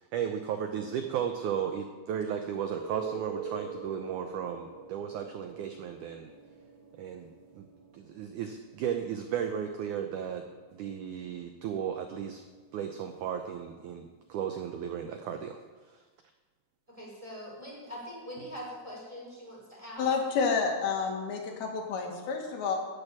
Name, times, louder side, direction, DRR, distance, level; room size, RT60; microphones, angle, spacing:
voice 1, 0.0-6.3 7.0-7.6 7.9-10.4 10.7-12.4 12.7-15.6, right 8 dB, 75° right, 6 dB, 1.8 m, -35 dB
sound 1, 2.6-14.1 18.4-18.5, right 5 dB, 60° right, 2.6 m, -46 dB
voice 2, 16.9-20.1, equal, 10° right, -4 dB, 3.5 m, -43 dB
voice 3, 20.0-22.8, left 5 dB, 80° left, 1 dB, 3.6 m, -29 dB
12.5 x 6.7 x 8.5 m, 1.4 s
omnidirectional pair, 4.4 m